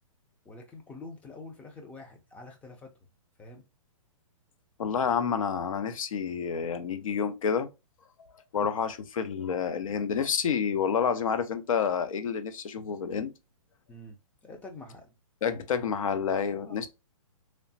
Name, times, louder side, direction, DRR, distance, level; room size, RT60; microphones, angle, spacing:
voice 1, 0.5-2.9 3.4-3.6 13.9-15.1 16.6-16.9, left 2 dB, 10° left, 0.4 m, -46 dB
voice 2, 4.8-7.7 8.5-13.3 15.4-16.9, left 7 dB, 75° left, 0.6 m, -29 dB
3.1 x 2.0 x 2.6 m
hypercardioid pair, 145°, 18 cm